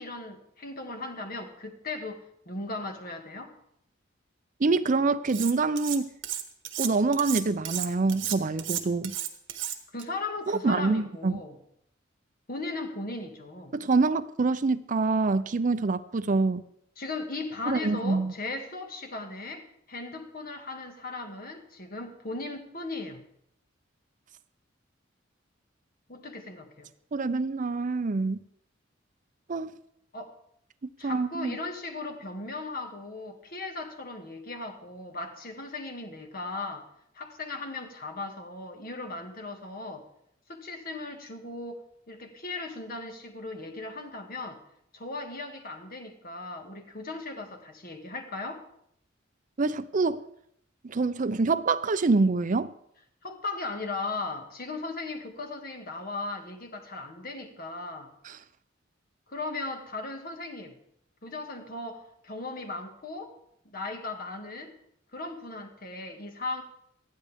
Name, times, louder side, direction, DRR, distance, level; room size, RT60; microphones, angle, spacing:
voice 1, 0.0-3.5 9.9-11.6 12.5-13.8 17.0-23.2 26.1-26.9 30.1-30.3 31.0-36.9 37.1-40.1 40.5-44.6 44.9-48.6 53.2-58.1 59.3-60.8 61.2-63.4 63.7-64.7 65.1-66.6, left 2 dB, 50° left, 4 dB, 1.9 m, -37 dB
voice 2, 4.6-6.1 6.8-9.1 10.5-11.4 13.7-16.6 17.7-18.3 27.1-28.4 29.5-29.8 30.8-31.6 49.6-50.2 50.8-52.7 58.2-58.4, right 3 dB, 40° right, 13 dB, 0.5 m, -26 dB
Cutlery silverware, 5.3-6.0 6.2-10.0, right 11 dB, 70° right, 1.5 m, -33 dB
27.5 x 9.4 x 3.6 m, 0.71 s
head